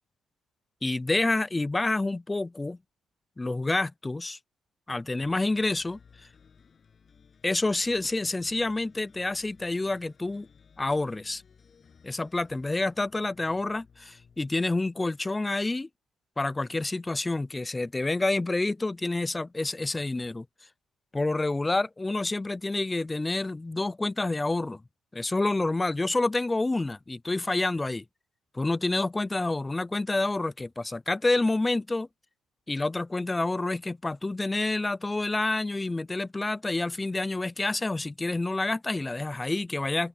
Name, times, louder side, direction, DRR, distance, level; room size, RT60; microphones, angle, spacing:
voice 1, 0.8-2.8 3.4-4.4 4.9-6.0 7.4-10.5 10.8-11.4 12.0-15.9 16.4-20.4 21.1-24.8 25.1-28.0 28.5-32.1 32.7-40.1, left 2 dB, 20° left, 0.5 m, -28 dB
sound 1, 5.2-15.0, left 6 dB, 45° left, 7.5 m, -58 dB
open air
cardioid pair, 90°, 0 cm